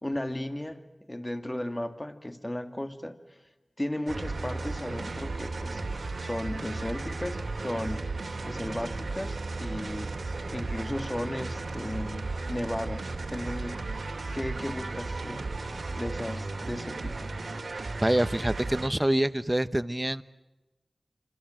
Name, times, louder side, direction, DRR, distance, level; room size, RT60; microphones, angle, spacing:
voice 1, 0.0-0.8 1.1-3.2 3.8-8.1 8.4-10.1 10.5-14.0 14.3-15.4 15.9-17.3, left 1 dB, 20° left, 8 dB, 2.3 m, -35 dB
sound 1, 4.1-18.9, right 3 dB, 85° right, 2.6 m, -35 dB
voice 2, 18.0-20.2, right 1 dB, 20° right, 14 dB, 1.0 m, -26 dB
27.5 x 26.5 x 7.7 m, 1.1 s
wide cardioid pair, 45°, 0 cm